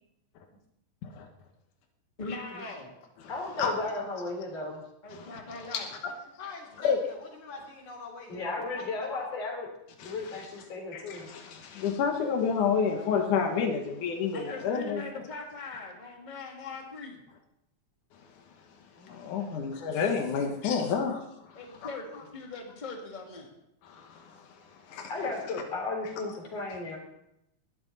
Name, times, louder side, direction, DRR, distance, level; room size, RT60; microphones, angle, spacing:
voice 1, 2.2-2.9 5.0-5.9 14.3-17.2 21.5-23.5, left 3 dB, 15° left, 0 dB, 2.3 m, -41 dB
voice 2, 3.3-4.8 8.3-9.7 10.0-11.3 19.9-20.0 25.1-27.0, left 3 dB, 55° left, 1 dB, 4.8 m, -35 dB
voice 3, 6.0-9.4 12.5-13.3 19.0-19.8, left 3 dB, 70° left, -1 dB, 4.6 m, -46 dB
voice 4, 10.0-10.5 10.9-15.0 19.0-21.6 23.8-25.1, left 6 dB, 90° left, 3 dB, 2.8 m, -30 dB
20.0 x 13.0 x 4.1 m, 0.83 s
omnidirectional pair, 3.4 m